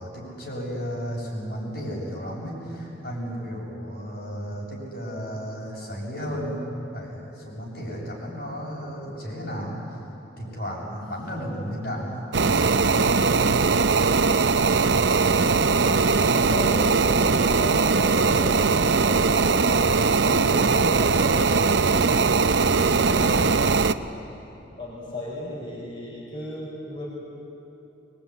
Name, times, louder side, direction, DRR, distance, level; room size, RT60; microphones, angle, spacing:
voice 1, 0.0-6.6 6.9-9.9 10.4-13.5, equal, 55° left, -3 dB, 7.6 m, -34 dB
sound 1, 12.3-23.9, right 4 dB, 70° right, 0.7 m, -20 dB
voice 2, 15.3-22.0 22.7-23.6 24.8-27.1, equal, 30° left, -5 dB, 4.8 m, -35 dB
25.0 x 22.0 x 9.7 m, 3.0 s
head